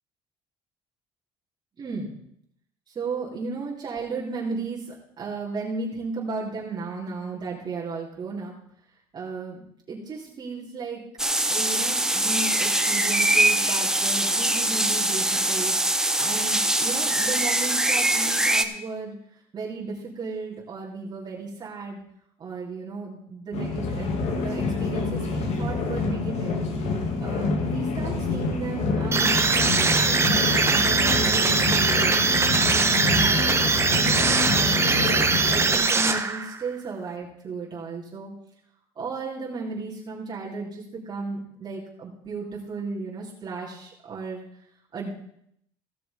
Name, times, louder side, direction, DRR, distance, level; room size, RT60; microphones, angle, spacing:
voice 1, 1.8-2.2 2.9-8.5 9.1-9.6 9.9-11.0 11.5-15.7 16.2-19.1 19.5-22.0 22.4-26.6 27.2-33.4 33.9-35.1 35.5-38.3 39.0-44.4 44.9-45.1, right 4 dB, 40° right, -5 dB, 3.2 m, -34 dB
sound 1, 11.2-18.6, right 1 dB, 5° right, 0.8 m, -23 dB
sound 2, 23.5-35.8, left 3 dB, 70° left, 2.1 m, -27 dB
sound 3, 29.1-36.6, right 4 dB, 25° right, 1.1 m, -21 dB
16.5 x 5.9 x 5.1 m, 0.73 s
cardioid pair, 105°, 11 cm